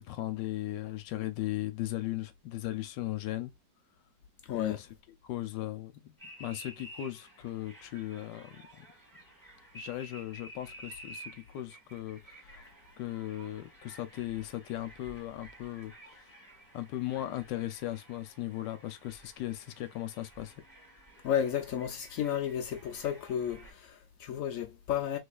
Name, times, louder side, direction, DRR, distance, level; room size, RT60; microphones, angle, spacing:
voice 1, 0.0-3.5 4.5-4.9 5.2-8.9 9.7-12.7 13.0-16.3 16.7-20.6, left 14 dB, 75° left, 1.2 m, -37 dB
voice 2, 4.4-4.8 21.2-25.2, left 9 dB, 90° left, 0.7 m, -32 dB
sound 1, 6.2-23.7, right 1 dB, ahead, 1.8 m, -53 dB
3.3 x 3.2 x 2.3 m
omnidirectional pair, 2.1 m